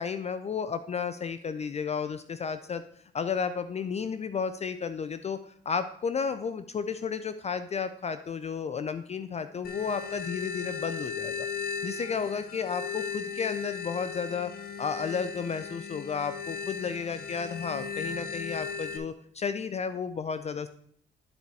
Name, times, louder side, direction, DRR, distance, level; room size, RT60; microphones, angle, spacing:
voice 1, 0.0-2.8 3.1-11.5 11.8-14.5 14.8-20.7, left 6 dB, 35° left, 11 dB, 0.4 m, -32 dB
sound 1, 9.6-19.0, left 6 dB, 50° left, 1.1 m, -37 dB
10.5 x 4.6 x 4.1 m, 0.64 s
cardioid pair, 90°, 20 cm